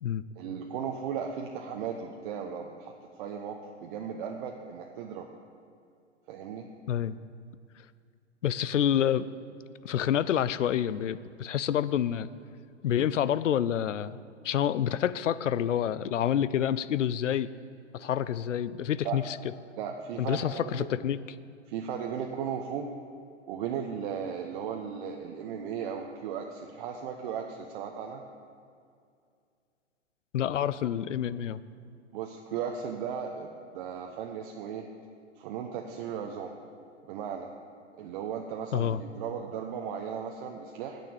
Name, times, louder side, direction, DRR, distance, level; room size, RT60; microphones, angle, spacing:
voice 1, 0.4-2.9 3.2-5.3 6.3-6.7 19.0-19.2 19.8-20.9 21.7-22.9 23.5-28.2 32.1-34.8 35.4-36.5 37.1-37.5 38.0-41.0, right 7 dB, 45° right, 2 dB, 0.9 m, -36 dB
voice 2, 6.9-7.2 8.4-9.2 9.8-12.3 12.8-14.2 14.4-17.5 17.9-19.4 20.2-21.2 30.3-31.6 38.7-39.0, left 10 dB, 80° left, 16 dB, 0.6 m, -28 dB
9.2 x 6.9 x 8.0 m, 2.3 s
hypercardioid pair, 120°, 36 cm